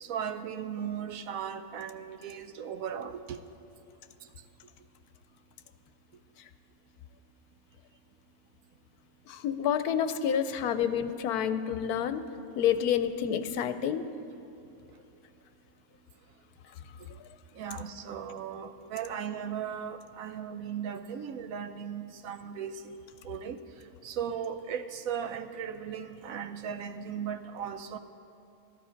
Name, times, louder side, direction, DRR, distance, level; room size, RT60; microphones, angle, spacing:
voice 1, 0.0-3.4 17.6-22.9 23.2-23.6 24.0-28.0, right 8 dB, 70° right, 9 dB, 1.0 m, -37 dB
voice 2, 9.3-12.2 12.6-14.1, left 8 dB, 85° left, 11 dB, 1.1 m, -28 dB
13.5 x 12.5 x 5.1 m, 2.8 s
omnidirectional pair, 1.6 m